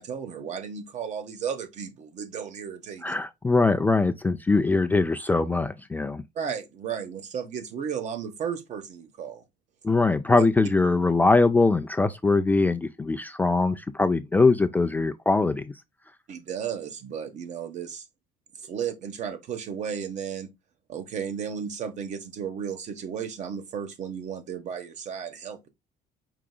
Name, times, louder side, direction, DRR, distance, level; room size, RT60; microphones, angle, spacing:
voice 1, 0.0-3.1 6.3-9.4 10.4-10.5 16.3-18.0 18.6-20.5 20.9-25.7, right 7 dB, 50° right, 1.1 m, -34 dB
voice 2, 3.0-6.2 9.8-15.7, left 3 dB, 10° left, 0.3 m, -22 dB
4.9 x 4.7 x 2.2 m
cardioid pair, 135°, 16 cm